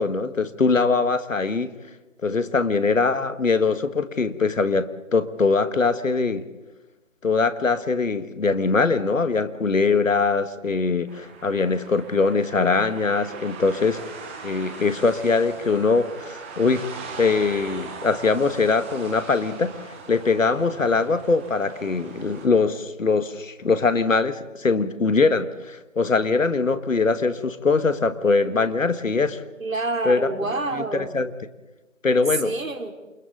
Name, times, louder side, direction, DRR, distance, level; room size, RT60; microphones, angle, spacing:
voice 1, 0.0-1.7 2.2-6.4 7.2-14.0 14.4-16.9 17.2-19.7 20.1-29.4 30.1-30.2 30.7-31.3 32.0-32.5, left 4 dB, 70° left, 11 dB, 1.9 m, -22 dB
sound 1, 11.1-22.5, right 4 dB, 10° right, 1.3 m, -40 dB
voice 2, 29.6-31.2 32.4-32.9, right 2 dB, 80° right, 5 dB, 3.5 m, -28 dB
29.0 x 28.5 x 4.0 m, 1.1 s
figure-of-eight pair, 160°, 40 cm